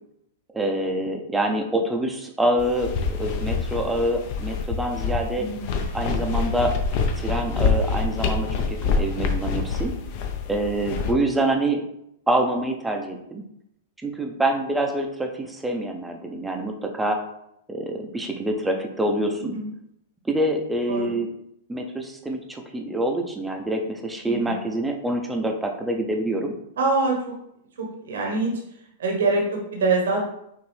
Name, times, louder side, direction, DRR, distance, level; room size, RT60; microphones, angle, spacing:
voice 1, 0.5-5.5 5.9-6.8 7.2-9.9 10.5-11.8 12.3-13.4 14.0-17.2 17.7-19.6 20.2-21.3 21.7-26.5, right 1 dB, 5° right, 3 dB, 0.6 m, -26 dB
sound 1, 2.6-11.1, left 5 dB, 45° left, 0.6 m, -26 dB
voice 2, 5.4-5.7 19.4-19.7 20.9-21.2 24.2-24.6 26.8-27.2 28.0-28.5 29.0-30.2, right 3 dB, 85° right, 0 dB, 1.1 m, -24 dB
5.9 x 2.6 x 3.3 m, 0.77 s
hypercardioid pair, 145°, 0 cm